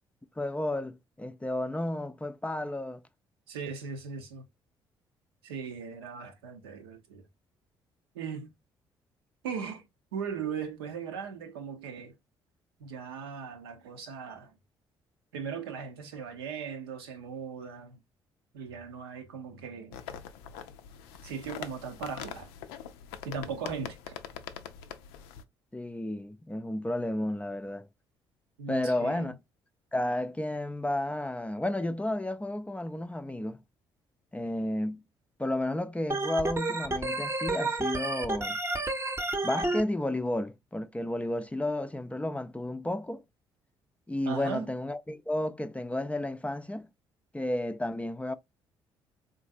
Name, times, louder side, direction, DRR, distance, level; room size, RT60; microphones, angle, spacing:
voice 1, 0.4-3.0 25.7-27.9 28.7-29.3 29.9-33.6 34.3-35.0 35.4-38.6 39.4-43.2 44.1-46.9 47.3-48.3, left 1 dB, 10° left, 0.4 m, -32 dB
voice 2, 3.5-4.4 5.4-7.2 8.1-8.5 9.4-9.9 10.1-12.1 12.8-14.5 15.3-18.0 18.5-20.0 21.2-22.5 23.2-24.1 28.6-29.3 44.2-44.7, right 6 dB, 85° right, 0.7 m, -38 dB
sound 1, 19.9-25.4, left 9 dB, 80° left, 0.4 m, -43 dB
Organ, 36.1-39.8, right 2 dB, 20° right, 0.7 m, -30 dB
3.7 x 2.6 x 2.5 m
hypercardioid pair, 45°, 12 cm